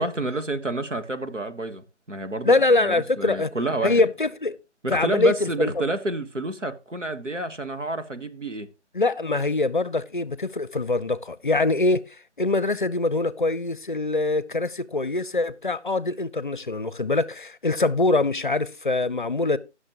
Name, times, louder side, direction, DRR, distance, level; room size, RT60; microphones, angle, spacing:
voice 1, 0.0-2.5 2.8-4.0 4.8-8.7, right 2 dB, 90° right, 1.5 m, -29 dB
voice 2, 2.4-3.5 3.8-4.6 4.9-5.7 8.9-12.0 12.4-19.6, left 2 dB, 45° left, 0.6 m, -23 dB
18.5 x 6.5 x 2.9 m
figure-of-eight pair, 155°, 36 cm